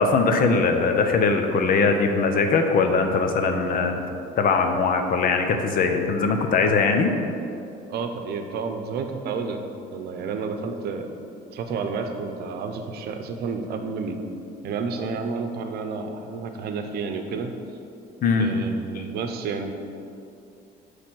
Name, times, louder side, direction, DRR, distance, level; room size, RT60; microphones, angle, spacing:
voice 1, 0.0-4.0 4.4-7.1 18.2-18.6 18.9-19.1, left 4 dB, 55° left, 5 dB, 0.8 m, -21 dB
voice 2, 7.9-11.1 11.5-14.2 14.6-17.5 18.4-19.7, right 5 dB, 70° right, 6 dB, 0.7 m, -30 dB
8.4 x 3.4 x 6.2 m, 2.5 s
cardioid pair, 110°, 17 cm